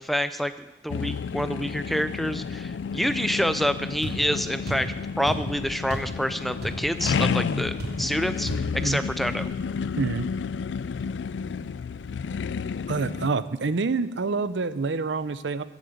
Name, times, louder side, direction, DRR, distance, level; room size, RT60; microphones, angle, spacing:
voice 1, 0.0-9.5, equal, ahead, 11 dB, 0.3 m, -28 dB
sound 1, 0.9-13.3, left 6 dB, 75° left, 0.3 m, -31 dB
sound 2, 4.0-4.2 4.7-4.9 5.3-5.5 5.9-6.1 6.4-6.9 7.2-7.3 7.8-8.0 8.5-8.6, right 1 dB, 55° right, 3.5 m, -33 dB
voice 2, 10.0-10.3 12.9-15.6, right 4 dB, 75° right, 14 dB, 0.6 m, -27 dB
15.0 x 7.4 x 7.9 m, 1.1 s
head